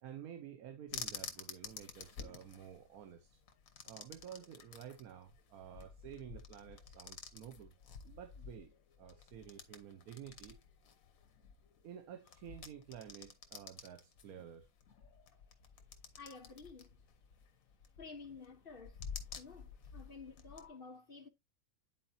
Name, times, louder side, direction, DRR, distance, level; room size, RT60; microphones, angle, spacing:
voice 1, 0.0-3.4 3.8-7.7 8.0-8.7 9.0-10.6 11.8-14.7, right 9 dB, 85° right, 1.3 m, -51 dB
sound 1, 0.9-20.7, left 6 dB, 70° left, 1.4 m, -51 dB
voice 2, 16.2-17.0 18.0-19.0 19.4-21.3, left 4 dB, 45° left, 1.0 m, -52 dB
10.0 x 4.3 x 2.6 m
omnidirectional pair, 1.5 m